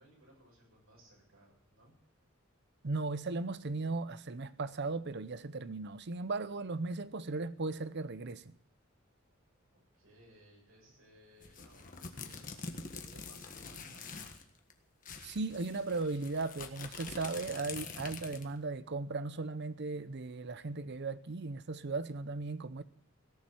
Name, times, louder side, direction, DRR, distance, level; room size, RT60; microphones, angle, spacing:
voice 1, 0.0-2.0 9.7-14.3, right 1 dB, 85° right, 7.7 m, -62 dB
voice 2, 2.8-8.5 15.2-22.8, right 3 dB, 55° right, 0.7 m, -37 dB
sound 1, 11.4-14.4 14.7-14.8 15.0-18.6, left 4 dB, 40° left, 1.6 m, -45 dB
17.5 x 7.4 x 9.2 m
head